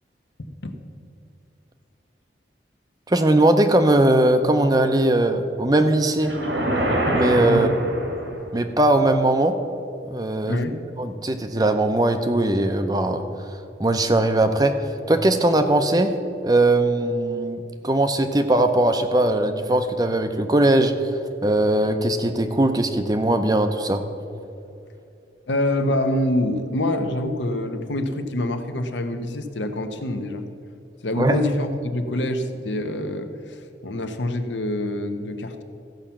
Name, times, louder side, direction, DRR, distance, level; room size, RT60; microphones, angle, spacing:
voice 1, 0.4-0.7 7.5-7.7 10.5-10.8 25.5-30.5 31.0-35.6, left 1 dB, 80° left, 7 dB, 0.9 m, -26 dB
voice 2, 3.1-6.3 7.1-7.7 8.5-9.5 10.1-10.6 11.0-14.7 15.1-16.1 16.4-20.9 21.4-24.0 31.2-31.4, right 1 dB, 20° right, 8 dB, 0.6 m, -20 dB
sound 1, 6.2-8.5, right 1 dB, 80° right, 2.2 m, -24 dB
14.5 x 5.7 x 7.3 m, 2.6 s
head